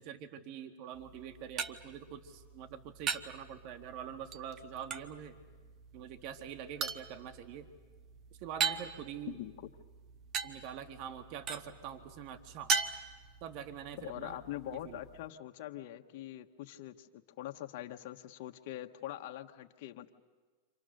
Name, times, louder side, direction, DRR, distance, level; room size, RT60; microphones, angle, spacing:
voice 1, 0.0-5.3 5.9-7.7 8.4-9.4 10.4-12.7 13.4-14.4 14.8-15.0, right 9 dB, 55° right, 7 dB, 1.8 m, -45 dB
sound 1, 0.9-15.3, right 5 dB, 35° right, 1.5 m, -40 dB
voice 2, 9.3-9.7 14.0-20.1, left 13 dB, 60° left, 4 dB, 1.4 m, -43 dB
30.0 x 26.5 x 6.6 m, 1.4 s
hypercardioid pair, 110°, 0 cm